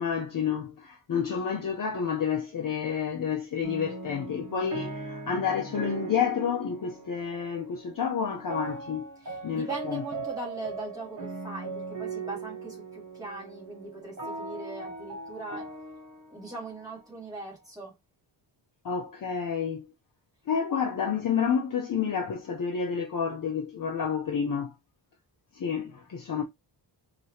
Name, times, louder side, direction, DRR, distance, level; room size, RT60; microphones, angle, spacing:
voice 1, 0.0-9.1 9.4-10.0 18.8-19.8 20.5-24.7 25.6-26.4, left 7 dB, 45° left, 0.7 m, -29 dB
sound 1, 3.6-17.6, right 3 dB, 40° right, 1.4 m, -39 dB
voice 2, 9.2-15.7 16.3-17.9, right 2 dB, 10° right, 2.1 m, -40 dB
4.7 x 2.9 x 2.8 m
wide cardioid pair, 165°, 46 cm